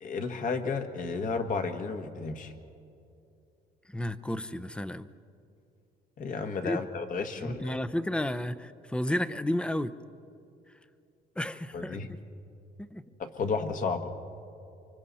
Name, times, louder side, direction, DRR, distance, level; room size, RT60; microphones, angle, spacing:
voice 1, 0.0-2.5 6.2-7.8 11.7-12.1 13.2-14.0, left 4 dB, 50° left, 5 dB, 1.7 m, -32 dB
voice 2, 3.9-5.1 6.6-6.8 7.4-10.0 11.4-12.2 12.8-13.0, left 1 dB, 5° left, 14 dB, 0.6 m, -32 dB
29.5 x 24.5 x 4.2 m, 2.7 s
cardioid pair, 110°, 17 cm